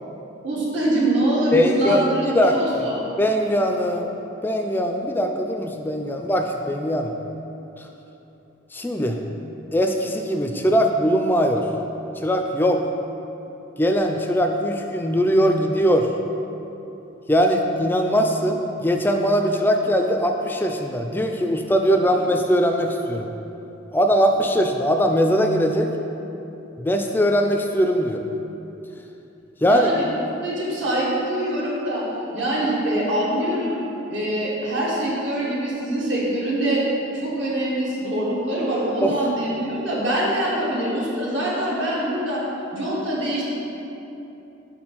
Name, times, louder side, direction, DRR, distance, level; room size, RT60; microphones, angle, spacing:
voice 1, 0.4-3.0 29.6-30.0 30.4-32.0 32.3-33.8 34.1-36.8 37.1-42.4 42.7-43.4, right 1 dB, 70° right, -6 dB, 1.4 m, -24 dB
voice 2, 1.5-2.9 3.2-7.1 7.8-7.9 8.7-9.2 9.7-11.7 12.2-12.8 13.8-16.1 17.3-23.3 23.9-25.9 26.8-28.2 29.6-29.9 39.0-39.2, equal, 10° left, 4 dB, 0.3 m, -21 dB
4.6 x 4.3 x 5.8 m, 2.9 s
head